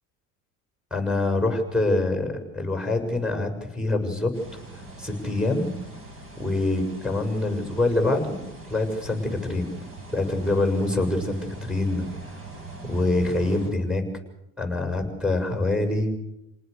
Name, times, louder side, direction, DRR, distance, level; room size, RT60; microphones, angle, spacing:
voice 1, 0.9-4.6 5.0-5.7 6.4-9.7 10.1-12.1 12.9-14.0 14.6-16.1, left 2 dB, 5° right, 6 dB, 7.1 m, -25 dB
sound 1, 4.3-13.7, right 2 dB, 35° right, 6.7 m, -42 dB
29.0 x 19.0 x 6.9 m, 0.83 s
supercardioid pair, 100°, 37 cm